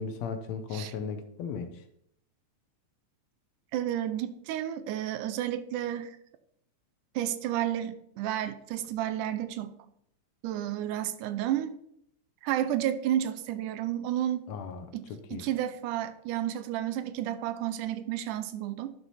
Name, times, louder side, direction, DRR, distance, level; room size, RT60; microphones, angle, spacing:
voice 1, 0.0-1.7 14.5-14.9 15.3-15.4, left 5 dB, 70° left, 8 dB, 1.9 m, -36 dB
voice 2, 3.7-6.2 7.2-9.8 10.4-11.8 12.4-14.4 14.9-15.0 15.3-18.9, right 11 dB, 90° right, 12 dB, 2.2 m, -31 dB
11.0 x 6.0 x 4.1 m, 0.71 s
omnidirectional pair, 3.5 m